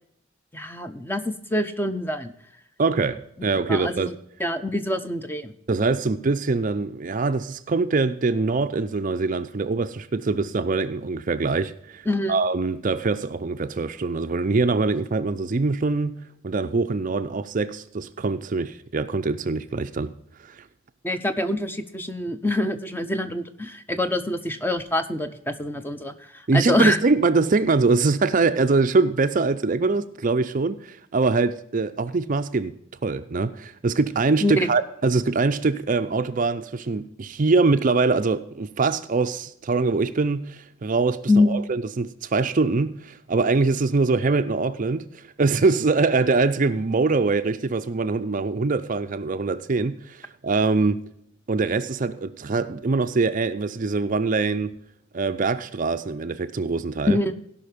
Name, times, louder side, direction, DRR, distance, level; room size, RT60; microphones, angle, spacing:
voice 1, 0.5-2.3 3.7-4.1 4.4-5.5 12.1-12.3 21.0-27.0 34.4-34.7 41.3-41.6 57.1-57.3, left 1 dB, 10° left, 0.6 m, -25 dB
voice 2, 2.8-4.1 5.7-20.1 20.4-20.6 26.5-32.8 33.0-51.0 51.5-54.8 55.1-57.2, right 3 dB, 40° right, 0.5 m, -23 dB
17.0 x 5.7 x 5.1 m
head